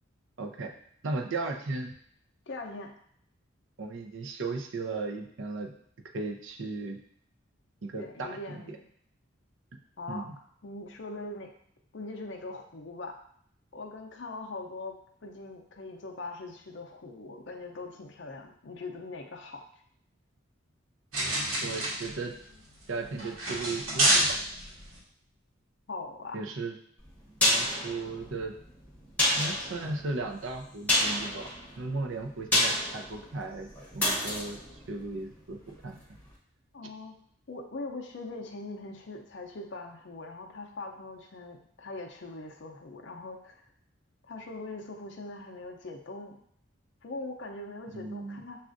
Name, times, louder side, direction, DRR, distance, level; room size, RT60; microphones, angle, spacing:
voice 1, 0.4-0.7 1.0-1.9 3.8-5.7 6.1-7.0 7.8-8.8 10.1-10.3 21.6-22.4 22.9-24.4 26.3-26.8 27.5-28.6 29.4-31.5 31.8-34.6 34.9-36.0 47.9-48.4, right 3 dB, 70° right, 3 dB, 0.5 m, -36 dB
voice 2, 2.5-2.9 8.0-8.9 10.0-10.3 10.6-11.5 11.9-13.1 13.7-15.0 15.2-19.6 25.9-26.4 36.7-37.2 37.5-43.6 44.3-46.4 47.0-48.6, left 2 dB, 60° left, 1 dB, 0.5 m, -41 dB
sound 1, 21.1-25.0, right 1 dB, 90° right, 1.2 m, -28 dB
sound 2, 27.0-35.9 36.1-36.2, left 1 dB, 5° left, 0.8 m, -30 dB
7.1 x 2.4 x 2.5 m, 0.64 s
head